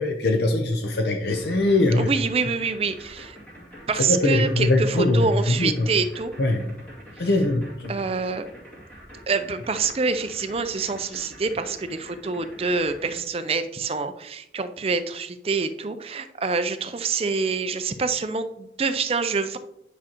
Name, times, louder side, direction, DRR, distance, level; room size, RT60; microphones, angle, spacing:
voice 1, 0.0-2.1 4.1-5.9 6.4-6.7 7.2-7.9, left 2 dB, 70° left, 4 dB, 0.6 m, -22 dB
sound 1, 1.3-13.2, equal, 10° left, 2.4 m, -45 dB
voice 2, 2.0-3.4 3.9-6.3 7.9-8.4 9.3-19.6, right 4 dB, 35° right, 10 dB, 0.4 m, -26 dB
9.9 x 6.0 x 2.9 m, 0.82 s
head